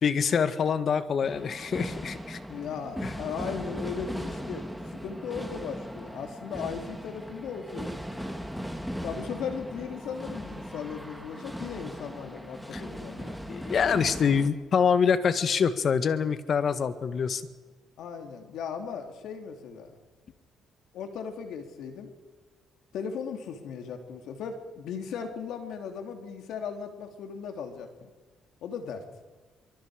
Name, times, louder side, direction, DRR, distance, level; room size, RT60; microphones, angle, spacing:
voice 1, 0.0-2.4 3.0-3.1 12.7-12.8 13.5-17.4, left 6 dB, 55° left, 11 dB, 1.5 m, -25 dB
sound 1, 1.2-14.5, equal, ahead, 2.3 m, -38 dB
voice 2, 2.5-8.0 9.0-13.4 18.0-19.9 20.9-22.1 22.9-28.1 28.6-29.0, left 6 dB, 80° left, 5 dB, 3.0 m, -37 dB
25.0 x 24.0 x 5.0 m, 1.4 s
cardioid pair, 90°, 0 cm